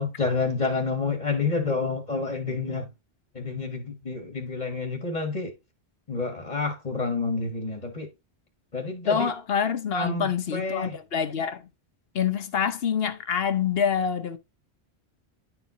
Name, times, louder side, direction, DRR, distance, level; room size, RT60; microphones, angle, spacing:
voice 1, 0.0-2.9 3.3-5.5 6.1-8.1 8.7-9.3 9.9-10.9, left 4 dB, 35° left, 1.4 m, -29 dB
voice 2, 9.0-11.7 12.1-14.4, left 7 dB, 65° left, 1.0 m, -26 dB
10.5 x 4.6 x 2.5 m
omnidirectional pair, 1.1 m